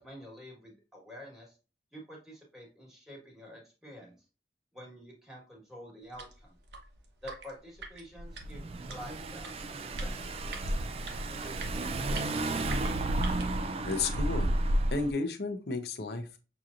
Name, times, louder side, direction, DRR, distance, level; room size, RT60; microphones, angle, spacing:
voice 1, 0.0-1.5 1.9-4.1 4.7-6.6 7.2-9.5 10.0-10.9 11.3-12.1, equal, 5° right, -1 dB, 1.4 m, -48 dB
sound 1, 6.0-13.6, right 3 dB, 85° right, 1.0 m, -47 dB
Car / Engine, 8.2-15.1, right 1 dB, 35° right, 0.3 m, -32 dB
voice 2, 13.8-14.5 14.9-16.4, left 3 dB, 65° left, 7 dB, 0.7 m, -32 dB
6.2 x 2.9 x 2.5 m, 0.33 s
head